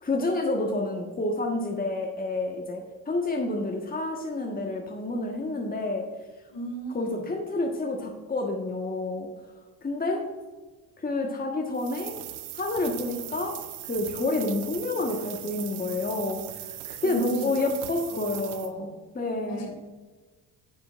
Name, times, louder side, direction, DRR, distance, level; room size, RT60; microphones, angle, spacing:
voice 1, 0.0-6.0 6.9-9.3 9.8-10.2 11.0-12.1 12.5-13.5 13.8-16.4 16.8-18.9 19.1-19.7, left 2 dB, 15° left, 1 dB, 1.4 m, -29 dB
voice 2, 6.5-7.2 17.0-17.6 18.1-18.9 19.5-19.7, equal, 55° left, 2 dB, 2.5 m, -37 dB
sound 1, 11.7-18.7, right 13 dB, 50° right, 0.8 m, -39 dB
11.0 x 8.5 x 2.5 m, 1.3 s
hypercardioid pair, 55°, 50 cm